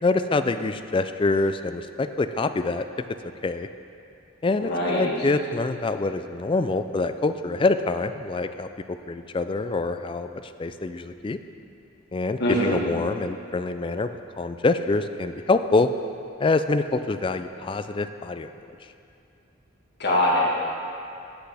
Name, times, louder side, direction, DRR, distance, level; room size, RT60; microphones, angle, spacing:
voice 1, 0.0-2.8 3.4-3.7 4.4-11.4 12.1-14.1 14.4-15.9 16.4-18.5, left 3 dB, 25° left, 10 dB, 0.3 m, -25 dB
voice 2, 4.6-5.1 12.4-12.8 20.0-20.5, left 1 dB, 55° left, -5 dB, 2.1 m, -23 dB
16.0 x 8.1 x 3.4 m, 2.6 s
head